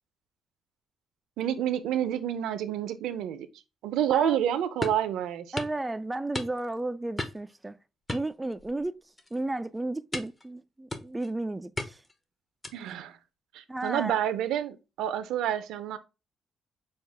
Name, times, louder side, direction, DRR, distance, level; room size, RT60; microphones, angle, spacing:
voice 1, 1.4-3.5 3.8-5.6 12.7-13.2 13.5-16.0, right 10 dB, 85° right, 0.6 m, -29 dB
sound 1, 4.8-5.1 5.6-5.8 6.3-6.8 7.2-7.5 8.1-8.9 9.2-9.4 10.1-10.5 10.9-11.3 11.8-12.2 12.6-13.0, left 2 dB, 20° left, 0.8 m, -36 dB
voice 2, 5.5-7.8 8.1-8.9 9.3-12.0 13.7-14.1, right 2 dB, 15° right, 0.3 m, -33 dB
6.4 x 2.4 x 3.4 m
cardioid pair, 90°, 0 cm